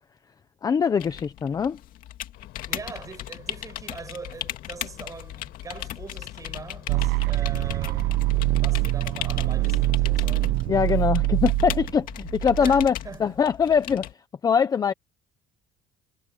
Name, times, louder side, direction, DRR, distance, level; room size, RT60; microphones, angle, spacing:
voice 1, 0.6-1.8 10.7-14.1 14.4-14.9, left 6 dB, 20° left, 0.7 m, -22 dB
sound 1, 1.0-14.1, left 13 dB, 55° left, 2.0 m, -38 dB
sound 2, 2.3-9.9, left 18 dB, 70° left, 6.3 m, -49 dB
voice 2, 2.7-10.7 12.6-13.5, right 5 dB, 20° right, 5.3 m, -42 dB
sound 3, 6.9-12.9, right 18 dB, 65° right, 0.7 m, -24 dB
cardioid pair, 175°, 18 cm